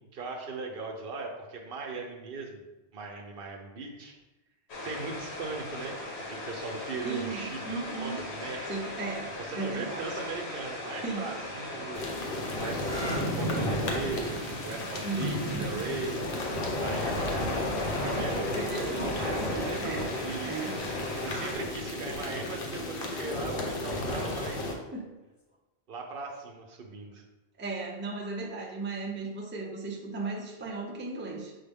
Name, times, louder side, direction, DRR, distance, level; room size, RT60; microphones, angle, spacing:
voice 1, 0.0-2.6 2.9-4.2 4.8-6.0 6.3-8.7 9.4-12.0 12.5-16.2 16.8-19.8 20.2-20.6 21.2-24.7 25.9-27.2, right 3 dB, 65° right, 1 dB, 0.8 m, -39 dB
sound 1, 4.7-21.5, left 1 dB, 85° left, 1.2 m, -37 dB
voice 2, 7.0-8.2 8.7-10.2 11.0-11.3 15.0-15.9 18.5-20.1 20.4-20.8 24.9-25.1 27.6-31.6, right 3 dB, 15° right, -1 dB, 0.4 m, -36 dB
sound 2, 11.9-24.7, left 1 dB, 65° left, 0.9 m, -33 dB
sound 3, 12.7-20.2 21.2-21.7 25.2-25.6, right 1 dB, 25° left, 0.7 m, -47 dB
6.2 x 2.2 x 3.4 m, 1.0 s
omnidirectional pair, 1.1 m